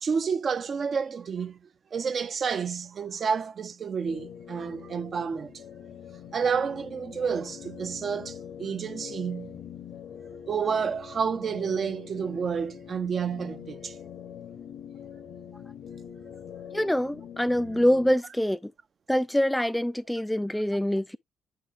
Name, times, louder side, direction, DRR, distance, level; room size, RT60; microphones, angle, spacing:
voice 1, 0.0-5.6 6.3-9.6 10.5-14.0, right 6 dB, 50° right, 0.5 m, -30 dB
sound 1, 4.0-18.2, left 8 dB, 75° left, 0.7 m, -44 dB
voice 2, 16.7-18.7 19.1-21.2, equal, 5° left, 0.3 m, -25 dB
9.1 x 4.7 x 2.4 m
supercardioid pair, 75°, 0 cm